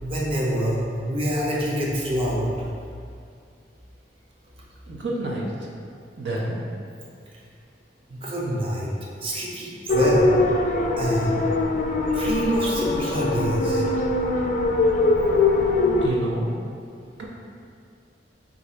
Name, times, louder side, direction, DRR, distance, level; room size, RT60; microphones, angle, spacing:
voice 1, 0.0-2.5 8.1-8.9 9.2-10.3 11.0-11.4 12.0-13.8, equal, 30° right, -5 dB, 0.6 m, -26 dB
voice 2, 4.9-5.7 6.2-6.6 16.0-16.5 17.2-17.3, right 1 dB, 80° right, -3 dB, 0.6 m, -29 dB
sound 1, 9.9-16.1, left 2 dB, 45° left, 0.3 m, -22 dB
3.9 x 2.4 x 4.3 m, 2.3 s
head